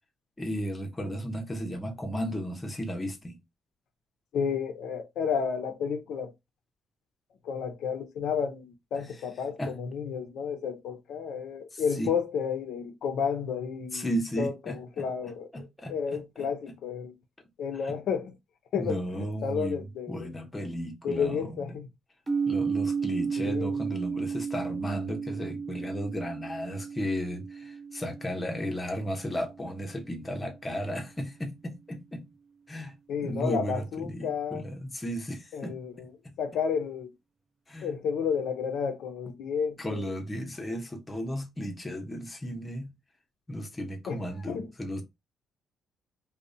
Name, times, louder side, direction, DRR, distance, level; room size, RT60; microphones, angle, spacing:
voice 1, 0.4-3.4 9.6-9.7 11.7-12.1 13.9-15.1 15.5-16.2 17.8-18.0 18.7-19.8 20.1-21.7 22.5-32.2 32.7-32.9 33.2-35.8 36.2-36.3 37.7-37.9 39.8-42.9 43.5-45.0, equal, 20° left, 0.6 m, -34 dB
voice 2, 4.3-6.3 7.4-14.1 14.4-17.1 17.6-18.3 18.7-20.3 21.0-21.9 23.4-23.8 33.1-34.6 35.5-36.1 36.4-37.1 37.8-40.1 44.1-44.7, left 6 dB, 75° left, 0.4 m, -31 dB
sound 1, 22.3-30.1, right 5 dB, 30° right, 0.4 m, -33 dB
2.6 x 2.0 x 2.4 m
cardioid pair, 90°, 0 cm